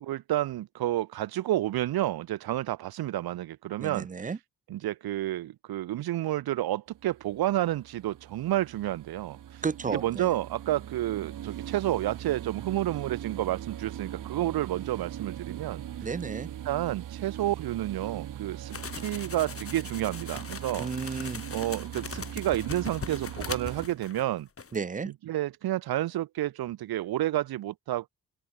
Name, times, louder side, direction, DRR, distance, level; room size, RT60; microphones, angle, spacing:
voice 1, 0.0-4.1 4.7-9.6 9.9-15.8 16.7-18.8 19.0-21.2 21.5-24.5 25.3-28.1, right 14 dB, 75° right, 1.1 m, -30 dB
voice 2, 3.8-4.4 9.6-10.3 16.0-16.5 20.8-21.4 24.7-25.1, right 5 dB, 20° right, 0.5 m, -33 dB
sound 1, 6.9-23.9, right 11 dB, 55° right, 0.9 m, -40 dB
sound 2, 18.7-24.3 24.6-24.8, left 5 dB, 35° left, 2.1 m, -40 dB
open air
supercardioid pair, 65°, 37 cm